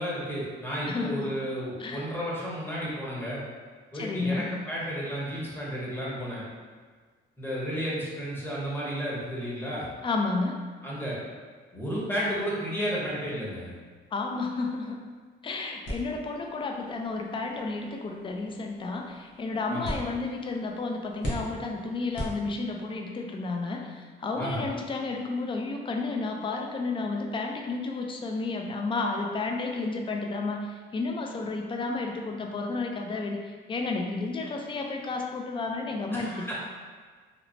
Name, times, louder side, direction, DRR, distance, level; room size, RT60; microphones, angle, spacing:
voice 1, 0.0-3.4 3.9-6.4 7.4-9.9 10.8-11.2 11.7-13.7 19.7-20.0 24.3-24.7 36.1-36.5, equal, 10° left, -7 dB, 0.9 m, -32 dB
voice 2, 0.9-1.4 1.8-2.1 3.9-4.5 10.0-10.6 14.1-15.0 15.4-36.5, left 3 dB, 25° left, 2 dB, 0.3 m, -32 dB
sound 1, 15.8-23.0, equal, 65° left, 0.9 m, -40 dB
2.9 x 2.1 x 2.6 m, 1.5 s
cardioid pair, 90°, 20 cm